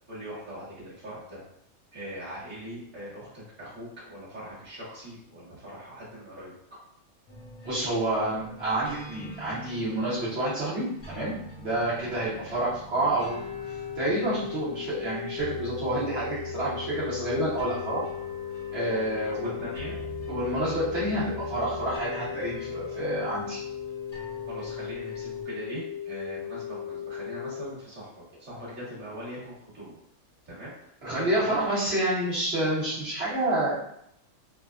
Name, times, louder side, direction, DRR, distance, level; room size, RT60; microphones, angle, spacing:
voice 1, 0.1-1.4 1.9-6.5 19.0-19.9 24.5-30.0 30.4-31.5, equal, 10° right, -9 dB, 1.0 m, -41 dB
sound 1, 7.3-25.4, right 2 dB, 35° left, 0.8 m, -45 dB
voice 2, 7.6-11.3 11.6-13.4 14.0-18.1 18.7-19.5 20.3-23.6 31.0-33.8, right 1 dB, 55° right, -10 dB, 1.1 m, -28 dB
sound 2, 13.3-27.7, left 9 dB, 75° right, 1.1 m, -37 dB
3.3 x 2.1 x 2.4 m, 0.73 s
omnidirectional pair, 1.4 m